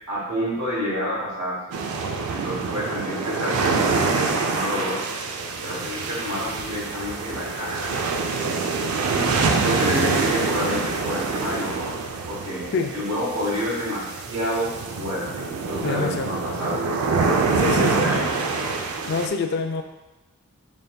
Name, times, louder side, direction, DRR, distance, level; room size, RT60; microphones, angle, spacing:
voice 1, 0.1-1.8 2.3-5.0 5.6-8.0 9.0-12.0 12.3-16.9 17.5-18.3, equal, 70° right, -6 dB, 1.1 m, -29 dB
sound 1, 1.7-19.3, right 4 dB, 90° right, 0.4 m, -25 dB
voice 2, 15.8-16.3 17.5-18.1 19.1-19.8, left 4 dB, 50° left, 6 dB, 0.3 m, -26 dB
5.2 x 3.3 x 2.2 m, 1.0 s
head